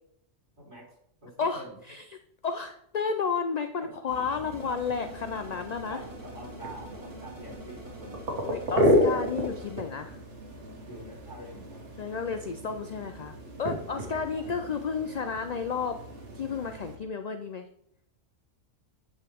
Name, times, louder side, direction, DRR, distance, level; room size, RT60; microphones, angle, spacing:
voice 1, 0.6-0.9 1.2-1.8 3.8-3.9 5.9-8.2 10.9-11.8 13.9-15.1, right 1 dB, 35° right, -6 dB, 3.8 m, -46 dB
voice 2, 1.4-2.2 2.4-6.0 8.5-10.2 12.0-16.0 16.3-17.7, left 5 dB, 55° left, 7 dB, 0.4 m, -32 dB
sound 1, 4.1-16.9, equal, 65° right, 1.7 m, -32 dB
sound 2, 4.5-9.8, equal, 15° right, 2.1 m, -47 dB
9.1 x 5.7 x 3.5 m, 0.72 s
omnidirectional pair, 1.3 m